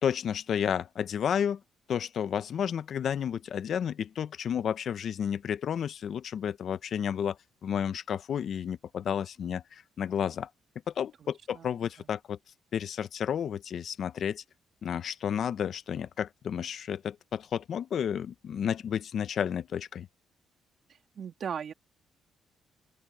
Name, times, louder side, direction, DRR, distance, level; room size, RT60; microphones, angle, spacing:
voice 1, 0.0-1.6 1.9-7.4 7.6-10.5 10.9-12.4 12.7-14.4 14.8-20.1, left 8 dB, 60° left, 0.8 m, -31 dB
voice 2, 11.2-11.7 12.0-12.1 21.2-21.7, right 7 dB, 55° right, 2.6 m, -38 dB
open air
cardioid pair, 90°, 0 cm